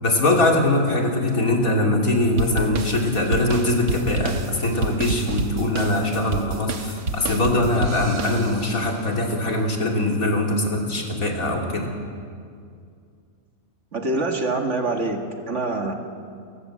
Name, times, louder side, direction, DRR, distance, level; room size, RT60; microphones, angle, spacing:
voice 1, 0.0-11.9, left 1 dB, 70° left, 0 dB, 3.3 m, -22 dB
sound 1, 2.4-8.9, right 4 dB, 80° right, 1.8 m, -30 dB
voice 2, 13.9-15.9, right 2 dB, 55° right, 3 dB, 2.2 m, -25 dB
30.0 x 15.0 x 7.6 m, 2.3 s
omnidirectional pair, 1.5 m